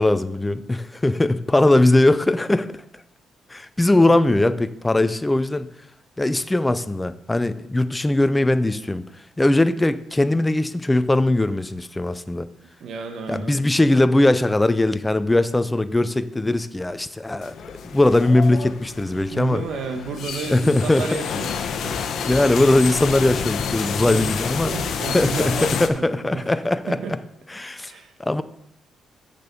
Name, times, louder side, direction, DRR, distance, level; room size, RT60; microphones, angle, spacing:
voice 1, 0.0-2.8 3.5-5.7 6.2-9.1 9.4-12.5 13.3-17.5 17.8-19.6 20.5-21.0 22.2-24.7 25.1-27.0 27.5-27.9 28.2-28.4, left 2 dB, 15° left, 12 dB, 0.5 m, -20 dB
voice 2, 12.8-13.6 19.3-22.0 24.0-24.3 24.7-26.5 26.9-27.2 27.9-28.1, right 4 dB, 70° right, 5 dB, 1.2 m, -32 dB
sound 1, 17.4-25.9, left 6 dB, 65° left, 1.0 m, -29 dB
6.8 x 6.6 x 6.9 m, 0.76 s
cardioid pair, 90°, 0 cm